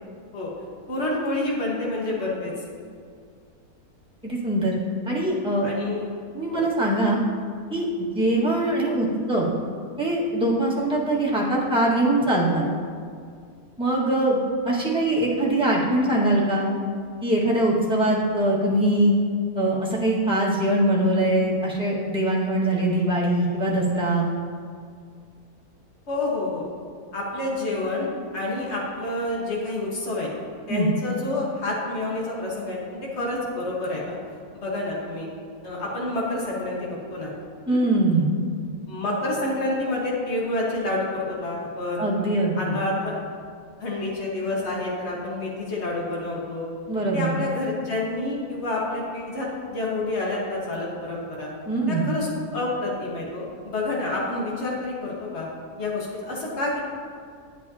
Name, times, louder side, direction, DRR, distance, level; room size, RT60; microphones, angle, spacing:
voice 1, 0.9-2.5 5.6-6.1 6.5-6.7 26.1-26.7 27.1-28.1 28.3-30.3 30.7-34.2 34.5-35.3 35.6-37.3 37.7-37.8 38.9-42.0 42.6-43.1 43.8-46.7 47.1-51.5 51.9-55.5 55.8-56.8, left 2 dB, 45° left, -4 dB, 1.8 m, -28 dB
voice 2, 4.2-4.7 5.1-5.7 6.3-7.2 7.7-9.5 10.0-12.6 13.8-14.4 14.6-16.7 17.2-19.1 19.5-24.3 30.7-30.9 37.7-38.3 42.0-42.8 46.9-47.3 51.7-52.0, right 1 dB, 5° right, -7 dB, 1.6 m, -22 dB
11.0 x 8.1 x 2.8 m, 2.2 s
omnidirectional pair, 1.6 m